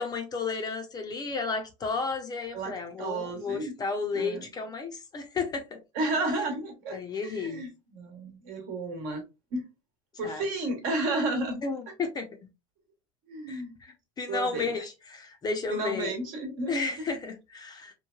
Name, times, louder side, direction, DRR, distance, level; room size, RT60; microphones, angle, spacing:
voice 1, 0.0-5.8 6.9-7.6 10.2-10.4 11.6-12.3 13.5-16.1 16.7-17.9, left 4 dB, 25° left, 0.6 m, -33 dB
voice 2, 2.5-3.7 4.1-4.5 5.9-7.0 7.2-9.2 9.5-9.6 10.2-11.6 13.3-13.7 14.3-14.7 15.7-16.8, right 2 dB, 60° right, 1.1 m, -32 dB
3.1 x 2.2 x 2.3 m
supercardioid pair, 115°, 16 cm